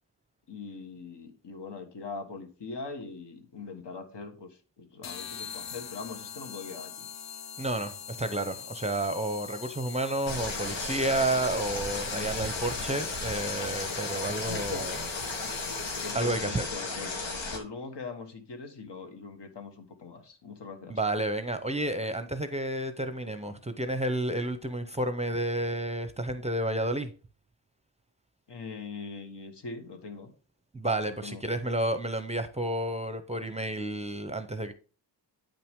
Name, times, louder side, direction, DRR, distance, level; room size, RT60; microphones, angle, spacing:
voice 1, 0.5-7.1 12.1-12.3 14.4-14.9 16.0-21.0 28.5-30.3 31.2-31.4, left 4 dB, 65° left, 1.5 m, -42 dB
sound 1, 5.0-16.4, left 8 dB, 40° left, 0.4 m, -43 dB
voice 2, 7.6-15.0 16.1-16.6 20.9-27.1 30.7-34.7, right 1 dB, 15° right, 0.6 m, -31 dB
sound 2, 10.3-17.6, left 3 dB, 85° left, 1.5 m, -34 dB
8.7 x 5.8 x 3.6 m
wide cardioid pair, 135°, 44 cm